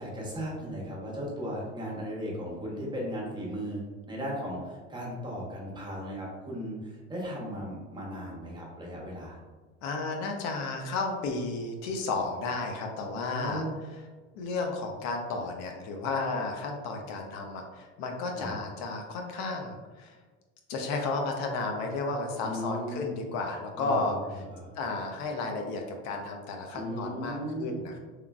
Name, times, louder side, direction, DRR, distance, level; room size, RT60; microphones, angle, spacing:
voice 1, 0.0-9.4 13.1-13.8 18.4-18.5 22.4-23.1 23.8-24.2 24.5-24.7 26.7-27.9, equal, 15° right, -3 dB, 0.9 m, -36 dB
voice 2, 9.8-13.6 14.3-20.2 20.7-24.4 24.8-28.0, left 3 dB, 65° left, 2 dB, 0.5 m, -33 dB
3.1 x 2.3 x 2.3 m, 1.3 s
supercardioid pair, 100°, 30 cm